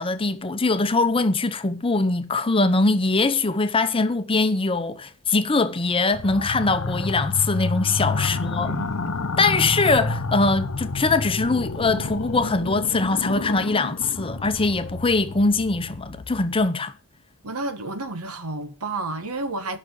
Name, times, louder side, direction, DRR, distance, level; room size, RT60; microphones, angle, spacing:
voice 1, 0.0-8.8 9.4-16.9, left 3 dB, 25° left, 0.8 m, -22 dB
sound 1, 6.1-16.7, left 3 dB, 70° left, 0.9 m, -30 dB
voice 2, 8.2-9.1 17.4-19.8, right 2 dB, 80° right, 1.4 m, -31 dB
10.5 x 6.0 x 8.0 m
head